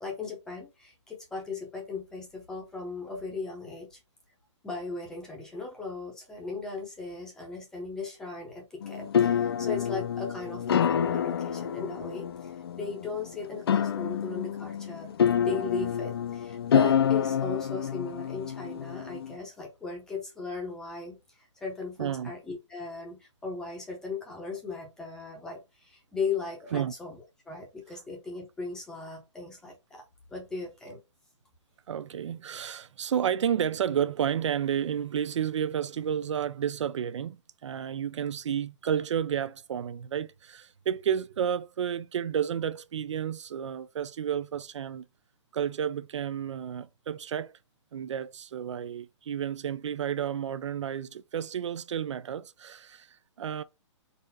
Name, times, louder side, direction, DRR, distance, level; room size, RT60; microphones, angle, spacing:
voice 1, 0.0-4.0 4.6-27.2 27.5-30.0 30.3-31.0, left 3 dB, 5° left, 0.7 m, -37 dB
sound 1, 8.8-19.3, left 8 dB, 55° left, 0.4 m, -28 dB
voice 2, 22.0-22.3 26.7-26.9 31.9-45.0 45.5-47.6 47.9-53.6, right 9 dB, 70° right, 0.4 m, -31 dB
4.0 x 2.5 x 4.0 m
hypercardioid pair, 175°, 16 cm